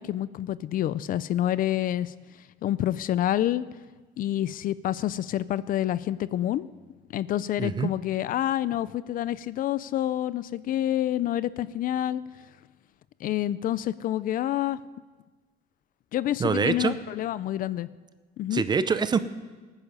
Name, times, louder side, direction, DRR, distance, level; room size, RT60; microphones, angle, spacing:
voice 1, 0.0-2.1 2.6-3.7 4.2-6.7 7.1-12.2 13.2-14.8 16.1-17.9 18.4-18.6, left 12 dB, 50° left, 17 dB, 0.4 m, -28 dB
voice 2, 7.6-7.9 16.4-17.0 18.5-19.2, right 5 dB, 25° right, 13 dB, 0.6 m, -24 dB
19.0 x 9.8 x 5.5 m, 1.3 s
cardioid pair, 150°, 18 cm